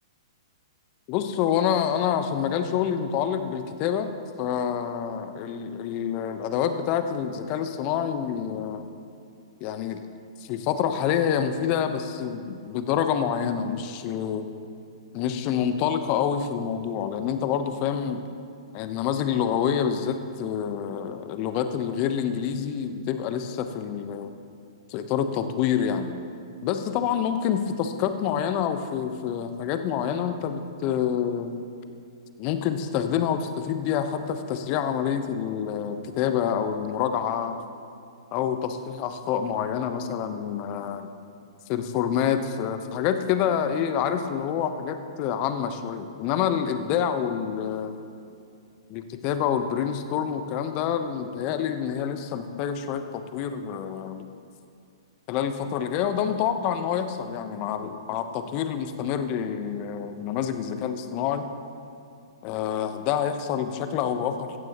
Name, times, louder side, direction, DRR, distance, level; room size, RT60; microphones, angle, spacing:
voice 1, 1.1-4.1 4.4-8.9 9.6-10.1 10.4-14.5 15.1-18.2 18.7-24.3 24.9-26.1 26.6-31.5 32.4-37.6 38.3-41.1 41.7-47.9 48.9-54.3 55.3-61.5 62.4-64.6, left 8 dB, 40° left, 9 dB, 0.9 m, -27 dB
16.0 x 14.5 x 3.0 m, 2.5 s
hypercardioid pair, 120°, 3 cm